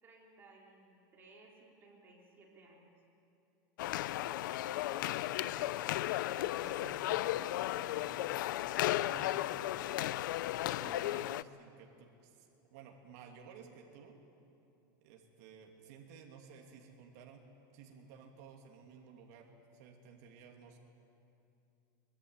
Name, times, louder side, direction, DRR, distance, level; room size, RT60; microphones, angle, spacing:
voice 1, 0.0-2.9, right 2 dB, 20° right, -2 dB, 3.9 m, -60 dB
sound 1, 3.8-11.4, left 15 dB, 70° left, 0.5 m, -35 dB
voice 2, 4.2-8.5 8.9-10.2 10.6-14.2 15.0-17.4 17.7-20.8, right 6 dB, 55° right, 1 dB, 2.7 m, -55 dB
23.5 x 20.0 x 9.4 m, 2.7 s
supercardioid pair, 165°, 11 cm